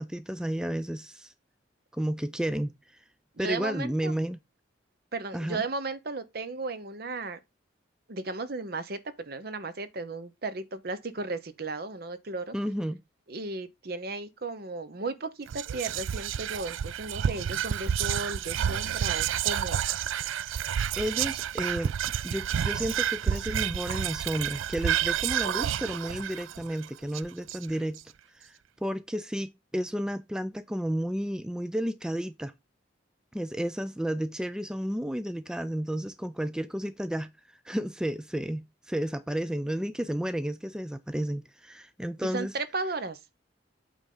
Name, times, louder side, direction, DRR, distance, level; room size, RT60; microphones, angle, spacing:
voice 1, 0.0-1.3 1.9-3.0 3.4-4.4 5.3-5.6 12.5-13.0 21.0-21.9 22.2-28.0 28.3-32.5 33.3-42.5, equal, 5° right, 0.3 m, -32 dB
voice 2, 3.3-4.1 5.1-7.4 8.1-12.5 13.3-19.8 42.3-43.2, right 3 dB, 55° right, 0.8 m, -35 dB
Whispering, 15.5-28.0, right 9 dB, 85° right, 0.4 m, -30 dB
8.4 x 3.6 x 5.4 m
head